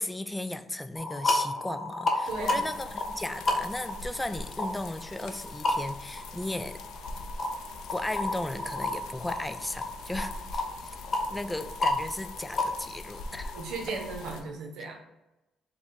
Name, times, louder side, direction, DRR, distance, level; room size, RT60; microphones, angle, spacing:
voice 1, 0.0-6.8 7.9-11.0 11.3-13.5, left 1 dB, 10° left, 10 dB, 0.3 m, -36 dB
sound 1, 1.0-14.3, left 2 dB, 45° left, 0.6 m, -33 dB
sound 2, 2.2-14.4, left 2 dB, 85° left, 0.4 m, -44 dB
voice 2, 2.3-2.7 13.5-15.0, right 4 dB, 85° right, 2 dB, 0.7 m, -36 dB
4.2 x 2.3 x 4.0 m, 0.99 s
cardioid pair, 90°, 0 cm